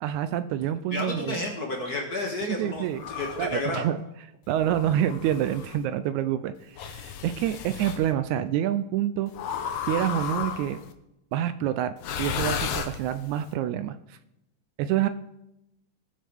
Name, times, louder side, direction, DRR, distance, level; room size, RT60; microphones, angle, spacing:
voice 1, 0.0-1.4 2.4-3.0 3.4-4.0 4.5-9.3 9.8-10.8 11.3-14.2 14.8-15.1, right 11 dB, 80° right, 11 dB, 1.9 m, -27 dB
voice 2, 0.9-3.9, left 2 dB, 40° left, 1 dB, 1.6 m, -31 dB
sound 1, 2.9-3.6 4.6-5.8 6.8-8.0 9.3-10.9 12.0-13.4, left 7 dB, 65° left, 1.8 m, -33 dB
19.5 x 7.5 x 3.5 m, 0.86 s
omnidirectional pair, 3.5 m